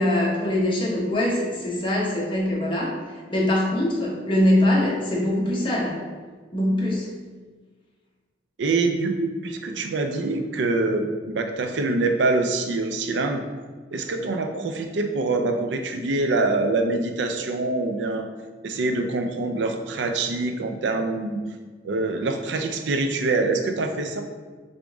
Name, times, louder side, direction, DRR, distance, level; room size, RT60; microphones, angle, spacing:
voice 1, 0.0-3.0 3.3-6.0 6.5-7.1, left 1 dB, 30° left, -3 dB, 0.9 m, -23 dB
voice 2, 8.6-13.4 13.9-18.3 18.6-21.4 21.8-24.2, right 3 dB, 90° right, 6 dB, 0.4 m, -25 dB
3.8 x 3.5 x 3.5 m, 1.4 s
head